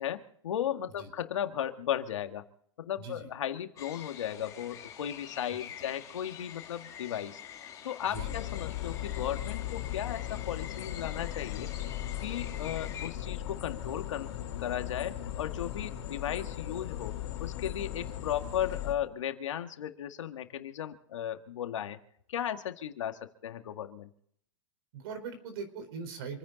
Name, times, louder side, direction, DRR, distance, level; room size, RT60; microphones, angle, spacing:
voice 1, 0.0-2.5 2.8-7.4 7.8-11.7 12.2-14.3 14.6-22.0 22.3-24.1, left 10 dB, 75° left, 7 dB, 1.8 m, -36 dB
voice 2, 3.0-3.3 5.5-5.6 8.0-8.3 15.8-16.0 18.0-18.1 24.9-26.4, right 5 dB, 50° right, 8 dB, 4.5 m, -41 dB
sound 1, 3.8-13.1, left 9 dB, 20° left, 2.4 m, -47 dB
sound 2, 8.1-18.9, left 12 dB, 60° left, 3.1 m, -37 dB
27.5 x 9.9 x 4.1 m, 0.66 s
hypercardioid pair, 150°, 16 cm